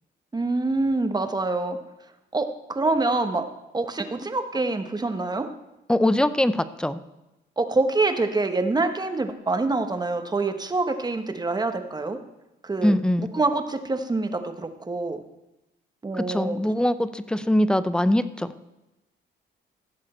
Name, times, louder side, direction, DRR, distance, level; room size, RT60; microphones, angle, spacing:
voice 1, 0.3-1.8 2.3-3.5 3.7-5.5 7.6-12.2 12.6-15.2 16.0-16.6, right 3 dB, 20° right, 7 dB, 1.1 m, -26 dB
voice 2, 5.9-7.0 12.8-13.3 16.2-18.5, left 1 dB, 5° left, 13 dB, 0.5 m, -22 dB
16.0 x 7.4 x 4.4 m, 1.0 s
cardioid pair, 90°, 20 cm